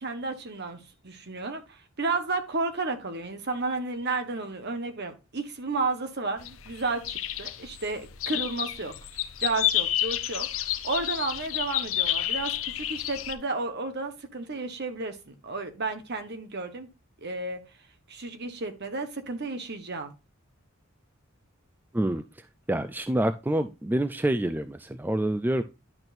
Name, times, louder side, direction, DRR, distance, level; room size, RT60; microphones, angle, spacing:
voice 1, 0.0-8.9 9.4-16.9 17.2-17.6 18.1-20.1, right 3 dB, 50° right, 1.2 m, -32 dB
sound 1, 6.4-13.3, left 12 dB, 70° left, 0.6 m, -30 dB
voice 2, 22.7-25.6, right 1 dB, 10° right, 0.3 m, -27 dB
10.5 x 6.1 x 2.6 m
head